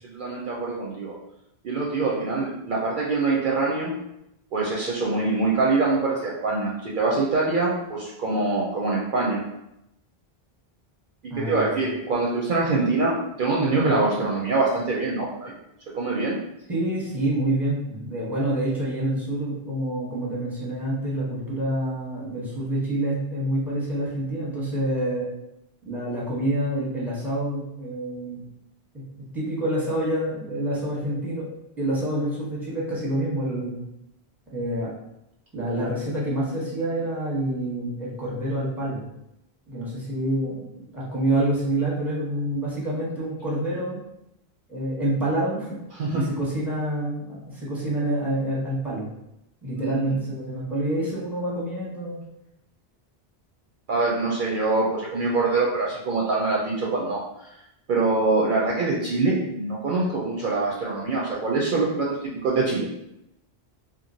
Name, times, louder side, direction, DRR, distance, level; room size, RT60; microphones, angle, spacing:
voice 1, 0.0-1.1 1.6-3.9 4.5-9.4 11.2-15.6 15.9-16.4 46.0-46.2 49.8-50.1 53.9-57.5 57.9-62.9, right 3 dB, 60° right, -3 dB, 0.6 m, -24 dB
voice 2, 11.3-11.7 16.7-25.3 25.8-28.4 28.9-31.5 31.8-33.8 34.5-34.9 35.5-39.0 39.7-44.0 44.7-45.8 46.1-49.1 49.6-52.2, right 1 dB, ahead, -6 dB, 0.7 m, -27 dB
2.9 x 2.4 x 2.6 m, 0.83 s
omnidirectional pair, 1.1 m